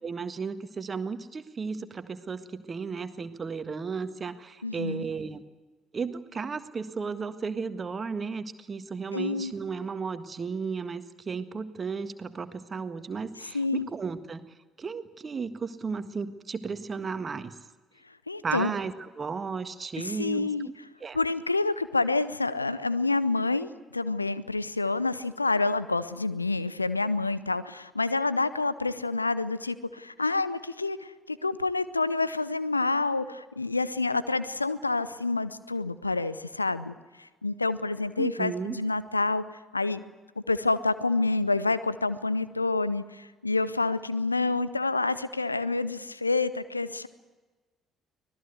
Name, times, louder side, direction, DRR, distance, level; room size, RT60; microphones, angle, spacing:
voice 1, 0.0-5.4 5.9-14.4 14.8-17.5 18.4-20.7 21.0-21.2 38.2-38.8, right 5 dB, 30° right, 10 dB, 1.7 m, -34 dB
voice 2, 4.6-5.0 9.1-9.5 13.5-13.9 18.3-18.7 20.0-20.7 21.1-39.4 39.7-40.0 40.5-47.1, left 3 dB, 85° left, 16 dB, 0.7 m, -28 dB
25.0 x 18.5 x 8.1 m, 1.3 s
figure-of-eight pair, 50°, 0 cm